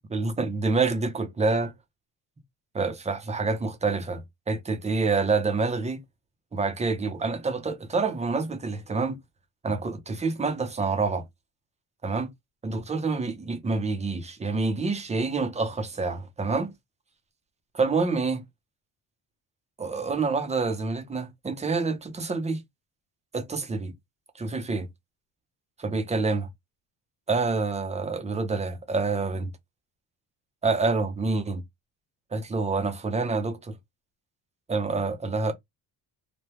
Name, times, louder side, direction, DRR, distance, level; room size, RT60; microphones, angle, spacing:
voice 1, 0.1-1.7 2.7-6.0 6.5-9.2 9.6-11.2 12.0-12.3 12.6-16.7 17.7-18.4 19.8-22.6 23.3-23.9 24.4-24.9 25.8-26.5 27.3-29.5 30.6-31.6 32.3-33.8 34.7-35.5, right 3 dB, 15° right, 0.6 m, -27 dB
3.4 x 2.2 x 2.9 m
cardioid pair, 130°, 40 cm